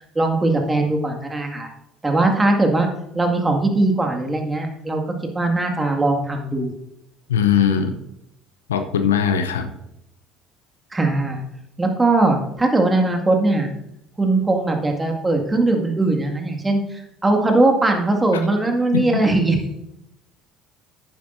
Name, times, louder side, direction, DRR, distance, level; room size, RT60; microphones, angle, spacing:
voice 1, 0.2-1.7 2.0-2.9 3.1-5.0 5.3-6.7 10.9-11.4 11.8-13.7 14.2-19.6, right 2 dB, 20° right, 3 dB, 2.0 m, -20 dB
voice 2, 7.3-7.9 8.7-9.7 18.9-19.2, left 8 dB, 85° left, 8 dB, 0.7 m, -20 dB
11.0 x 9.2 x 2.7 m, 0.83 s
hypercardioid pair, 60°, 0 cm